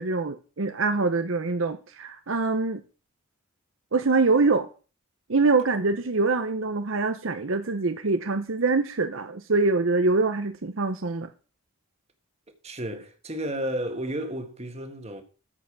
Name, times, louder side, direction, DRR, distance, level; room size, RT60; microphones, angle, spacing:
voice 1, 0.0-2.8 3.9-4.7 5.3-11.3, right 3 dB, 65° right, 0.8 m, -24 dB
voice 2, 12.6-15.2, right 1 dB, 30° right, 1.6 m, -32 dB
14.0 x 5.8 x 6.0 m
head